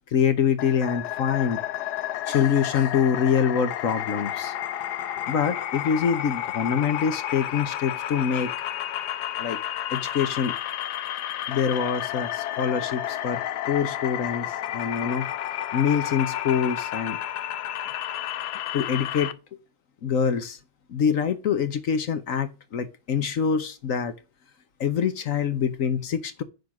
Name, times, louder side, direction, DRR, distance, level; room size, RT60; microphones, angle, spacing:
voice 1, 0.1-1.6 2.3-4.5 5.3-8.5 9.4-9.6 9.9-10.5 11.5-13.4 13.7-15.3 15.7-17.2 18.7-19.3 20.0-20.6 20.9-24.1 24.8-26.4, left 7 dB, 55° left, 1.1 m, -25 dB
sound 1, 0.6-19.3, left 12 dB, 75° left, 1.2 m, -31 dB
10.0 x 4.0 x 5.9 m
omnidirectional pair, 1.9 m